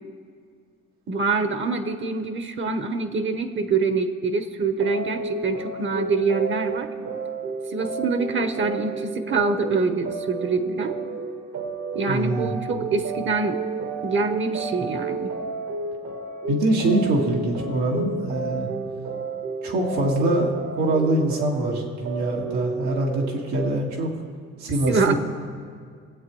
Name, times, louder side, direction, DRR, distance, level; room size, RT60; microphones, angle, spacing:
voice 1, 1.1-6.9 7.7-11.0 11.9-13.6 14.0-15.3 24.9-25.1, right 4 dB, 40° right, 9 dB, 1.0 m, -25 dB
sound 1, 4.8-23.7, right 3 dB, 60° right, 1.4 m, -31 dB
voice 2, 12.1-12.5 16.5-18.7 19.6-24.1 24.6-25.1, right 1 dB, 85° right, -1 dB, 1.8 m, -24 dB
22.0 x 8.0 x 3.1 m, 2.1 s
supercardioid pair, 65°, 29 cm